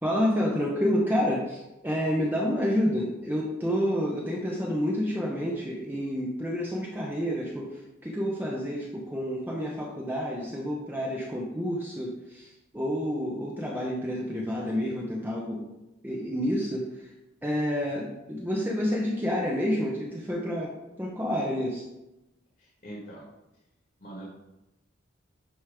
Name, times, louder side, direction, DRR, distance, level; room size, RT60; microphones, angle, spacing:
voice 1, 0.0-15.7 16.0-17.1 17.4-20.7 21.0-21.8, equal, 10° right, -3 dB, 0.8 m, -29 dB
voice 2, 22.6-23.2 24.0-24.2, right 1 dB, 50° left, -5 dB, 1.8 m, -43 dB
9.3 x 3.1 x 4.9 m, 0.95 s
head